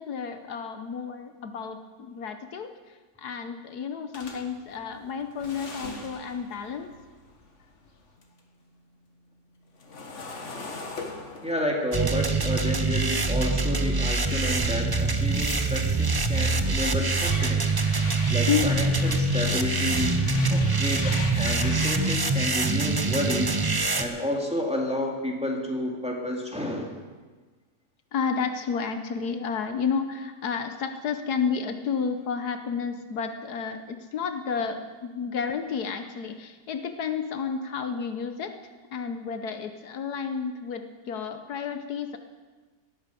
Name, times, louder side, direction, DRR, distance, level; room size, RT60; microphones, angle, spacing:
voice 1, 0.0-6.9 18.5-18.9 28.1-38.5 38.9-42.2, left 6 dB, 70° left, 8 dB, 1.4 m, -31 dB
sound 1, 4.1-8.4 8.7-13.7 14.2-22.2, left 3 dB, 45° left, 1.9 m, -40 dB
voice 2, 11.4-17.8 18.3-21.0 21.3-23.6 24.0-26.9, left 1 dB, 5° right, 0 dB, 2.0 m, -30 dB
sound 2, 11.9-24.0, right 3 dB, 35° right, 0.3 m, -24 dB
17.5 x 9.4 x 6.9 m, 1.4 s
omnidirectional pair, 1.7 m